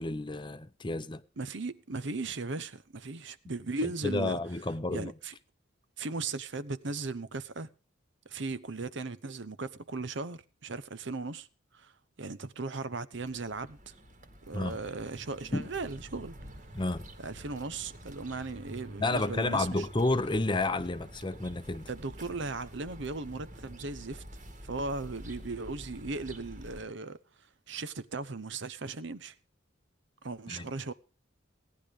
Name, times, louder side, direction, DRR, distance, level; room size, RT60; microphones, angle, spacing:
voice 1, 0.0-1.2 4.0-5.1 14.5-14.8 15.5-15.7 16.7-17.1 19.0-21.9 30.5-30.7, left 2 dB, 25° left, 0.7 m, -31 dB
voice 2, 1.4-4.4 4.9-5.3 6.0-7.7 8.3-11.5 11.7-11.9 12.2-13.8 14.5-16.4 17.2-19.9 21.9-24.2 24.6-27.2 27.7-29.4 30.2-30.9, right 3 dB, 65° right, 0.9 m, -37 dB
sound 1, 13.1-26.8, equal, 40° right, 2.0 m, -48 dB
17.5 x 10.5 x 5.0 m
head